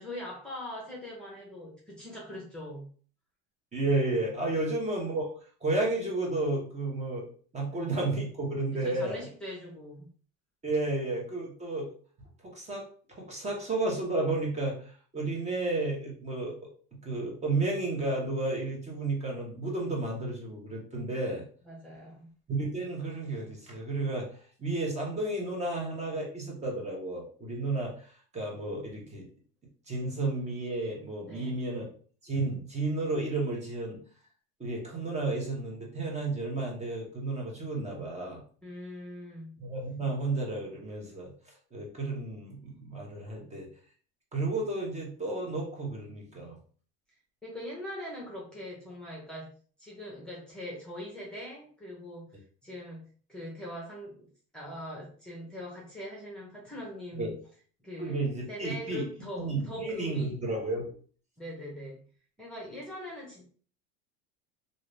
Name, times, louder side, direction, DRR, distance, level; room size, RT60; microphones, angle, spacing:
voice 1, 0.0-2.9 4.5-4.6 7.7-7.8 8.7-10.1 21.6-22.3 31.2-31.6 38.6-39.6 43.4-43.7 47.4-49.5 49.8-52.3 52.6-57.3 57.8-60.4 61.4-62.1 62.4-63.4, left 1 dB, 5° left, -4 dB, 1.0 m, -42 dB
voice 2, 3.7-5.3 5.6-7.2 7.5-9.2 10.6-11.9 12.4-12.8 13.1-16.5 17.0-21.4 22.5-24.3 24.6-29.3 29.9-31.8 32.2-34.0 34.6-38.4 39.6-41.3 41.7-43.7 44.3-46.6 57.2-57.3 58.0-59.1 59.4-60.9, right 2 dB, 20° right, -1 dB, 1.1 m, -32 dB
2.6 x 2.6 x 3.3 m, 0.43 s
supercardioid pair, 115°, 32 cm